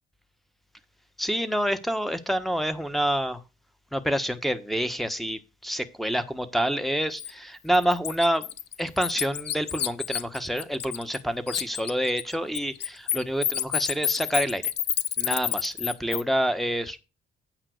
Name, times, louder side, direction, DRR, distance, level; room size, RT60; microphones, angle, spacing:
voice 1, 1.2-3.4 3.9-8.5 8.8-14.7 15.2-17.0, equal, ahead, 1.3 m, -27 dB
Bird, 7.2-7.3 7.7-11.2 11.5-16.2, left 10 dB, 60° left, 0.7 m, -29 dB
9.0 x 5.7 x 6.5 m
cardioid pair, 90°, 20 cm